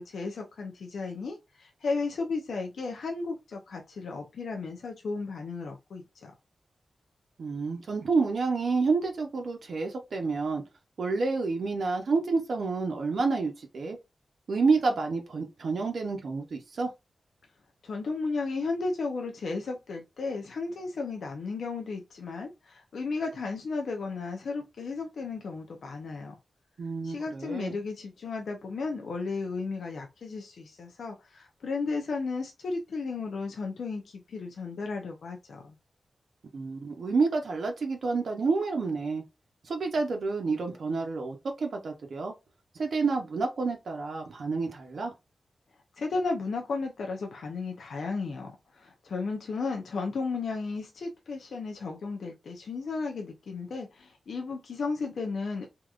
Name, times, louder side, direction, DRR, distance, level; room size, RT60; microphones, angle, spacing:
voice 1, 0.0-6.3 17.8-26.3 27.0-35.8 46.0-55.7, left 4 dB, 80° left, 0.6 m, -34 dB
voice 2, 7.4-10.6 11.0-14.0 14.5-16.9 26.8-27.8 36.5-39.2 39.6-42.3 42.7-45.1, right 4 dB, 65° right, 0.7 m, -29 dB
3.5 x 2.9 x 2.4 m
wide cardioid pair, 155°, 0 cm